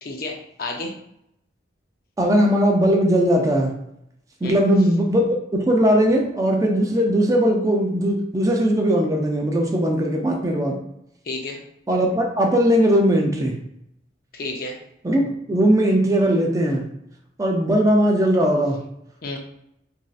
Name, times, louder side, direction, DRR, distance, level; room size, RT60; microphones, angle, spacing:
voice 1, 0.0-0.9 4.4-4.6 11.3-11.6 14.3-14.8 19.2-19.4, left 2 dB, 55° left, 2 dB, 0.5 m, -31 dB
voice 2, 2.2-3.7 4.4-10.8 11.9-13.5 15.0-16.8 17.4-18.8, equal, 20° right, 0 dB, 0.4 m, -19 dB
3.0 x 2.6 x 2.4 m, 0.76 s
head